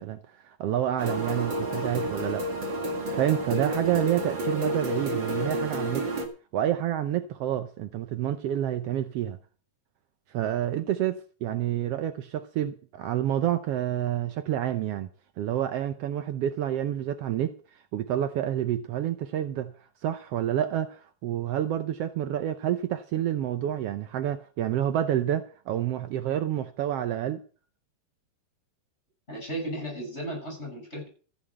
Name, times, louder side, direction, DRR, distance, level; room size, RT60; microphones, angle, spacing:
voice 1, 0.0-2.5 3.2-6.1 6.5-9.4 10.3-15.1 15.4-17.5 17.9-19.7 20.0-27.4, right 11 dB, 85° right, 1.3 m, -28 dB
sound 1, 1.0-6.3, right 1 dB, 40° right, 2.4 m, -30 dB
voice 2, 29.3-31.1, right 1 dB, 20° left, 7.5 m, -35 dB
14.5 x 6.5 x 7.7 m
omnidirectional pair, 3.7 m